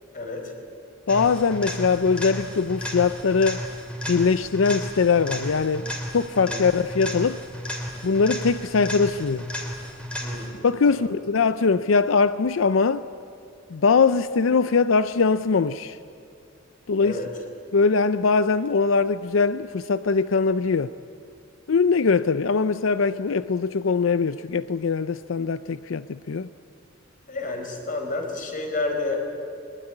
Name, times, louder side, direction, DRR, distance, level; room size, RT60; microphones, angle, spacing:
voice 1, 0.1-0.5 6.4-6.6 10.2-11.1 17.0-17.3 27.3-29.3, left 3 dB, 45° left, 4.4 m, -30 dB
voice 2, 1.1-3.6 4.1-7.4 8.0-9.5 10.6-13.0 13.7-16.0 16.9-17.2 17.7-20.9 21.7-26.5, left 4 dB, 90° left, 0.5 m, -21 dB
sound 1, 1.1-10.7 18.7-18.8, equal, 5° left, 3.1 m, -34 dB
22.0 x 21.5 x 9.8 m
head